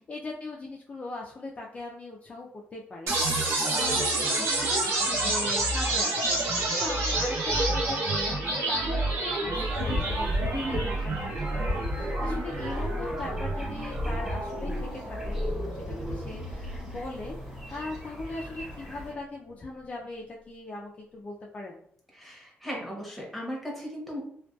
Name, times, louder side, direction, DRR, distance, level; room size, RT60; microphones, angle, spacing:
voice 1, 0.0-21.8, left 2 dB, 30° left, -3 dB, 0.3 m, -40 dB
sound 1, 3.1-17.0, right 2 dB, 65° right, 0.8 m, -29 dB
sound 2, 9.5-19.1, left 2 dB, 20° right, 1.2 m, -38 dB
voice 2, 10.5-11.0 22.1-24.2, equal, ahead, -2 dB, 0.8 m, -36 dB
2.5 x 2.2 x 2.3 m, 0.64 s
cardioid pair, 125°, 4 cm